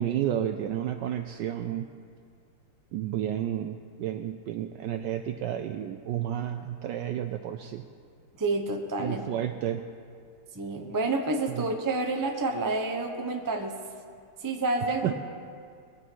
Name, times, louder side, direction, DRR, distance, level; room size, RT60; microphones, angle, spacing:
voice 1, 0.0-1.9 2.9-7.8 9.0-9.8 11.5-11.6 15.0-15.1, right 11 dB, 75° right, 7 dB, 1.0 m, -31 dB
voice 2, 8.4-9.3 10.5-13.8 14.4-15.1, right 2 dB, 30° right, 3 dB, 0.3 m, -29 dB
21.0 x 11.0 x 4.6 m, 2.2 s
omnidirectional pair, 2.4 m